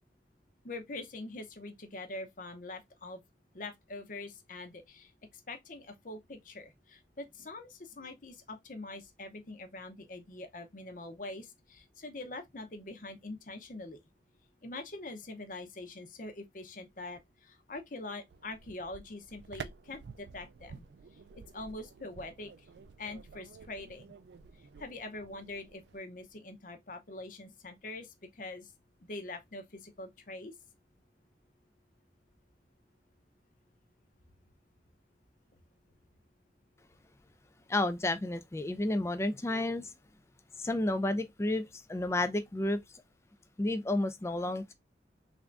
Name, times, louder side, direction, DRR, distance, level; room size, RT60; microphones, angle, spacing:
voice 1, 0.6-3.2 3.5-14.0 14.6-20.8 21.1-22.7 23.0-24.1 24.6-28.7 29.0-30.5, left 2 dB, 45° left, 0.7 m, -44 dB
sound 1, 18.3-26.0, right 5 dB, 70° right, 0.3 m, -51 dB
voice 2, 37.7-39.9 40.6-42.8 43.6-44.7, left 1 dB, 15° left, 0.3 m, -31 dB
3.5 x 2.5 x 3.3 m
head